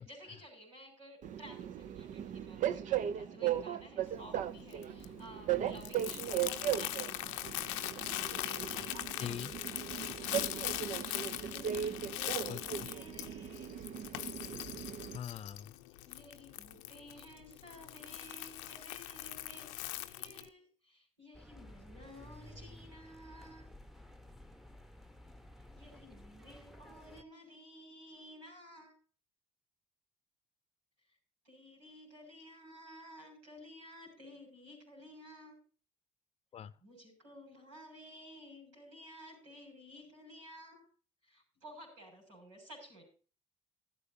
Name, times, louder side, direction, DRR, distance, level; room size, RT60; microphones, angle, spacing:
voice 1, 0.0-9.3 9.7-12.5 12.7-13.7 16.0-23.7 25.7-28.9 31.1-31.2 31.4-35.6 36.8-40.9 41.2-43.0, equal, 85° right, 1 dB, 6.8 m, -54 dB
Train, 1.2-15.2, right 10 dB, 55° right, 0.7 m, -38 dB
Crumpling crinkling, 4.1-20.5, left 16 dB, 80° left, 0.6 m, -41 dB
voice 2, 9.2-9.5 12.5-12.9 15.1-15.8 36.5-36.8, left 9 dB, 40° left, 16 dB, 0.7 m, -42 dB
sound 1, 21.3-27.2, left 1 dB, ahead, 1.1 m, -54 dB
14.5 x 13.0 x 2.8 m, 0.38 s
hypercardioid pair, 50°, 15 cm